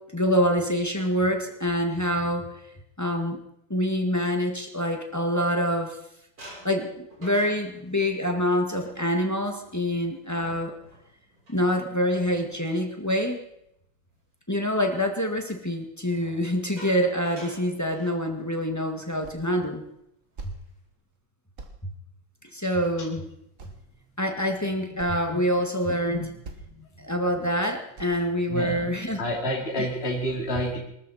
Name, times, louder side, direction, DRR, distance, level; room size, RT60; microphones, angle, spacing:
voice 1, 0.0-2.6 3.0-3.4 3.7-6.0 6.6-10.7 11.5-13.4 14.5-19.8 22.5-23.2 24.2-26.3 27.0-29.2, equal, 10° left, 4 dB, 1.6 m, -26 dB
sound 1, 4.7-5.9 6.4-14.2 14.6-14.9 16.0-18.6 18.9-19.1 19.5-19.7 20.2-20.9, right 1 dB, 90° right, 8.1 m, -49 dB
sound 2, 19.2-19.5 19.8-20.6 21.0-21.2 21.6-21.8 23.0-23.1 23.6-24.0 24.5-24.6 24.8-25.2 25.9-26.1 26.4-26.8 27.2-27.4 28.0-28.3, right 3 dB, 40° right, 1.7 m, -43 dB
voice 2, 26.8-27.1 28.5-28.9 29.2-30.8, equal, 30° left, -2 dB, 3.0 m, -29 dB
23.5 x 13.5 x 4.3 m, 0.76 s
omnidirectional pair, 2.2 m